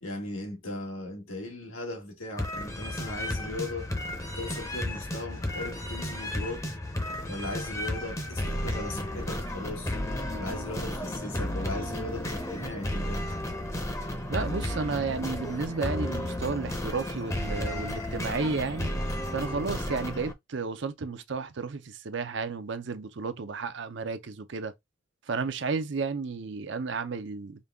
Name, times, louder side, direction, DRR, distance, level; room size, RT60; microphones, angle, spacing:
voice 1, 0.0-3.9 4.4-6.7 7.3-10.0 10.4-13.2, left 2 dB, 90° left, 1.7 m, -38 dB
sound 1, 2.4-20.3, left 1 dB, 15° left, 0.7 m, -33 dB
voice 2, 14.3-19.0 19.3-24.7 25.3-27.6, right 4 dB, 60° right, 0.5 m, -32 dB
5.1 x 2.2 x 3.5 m
head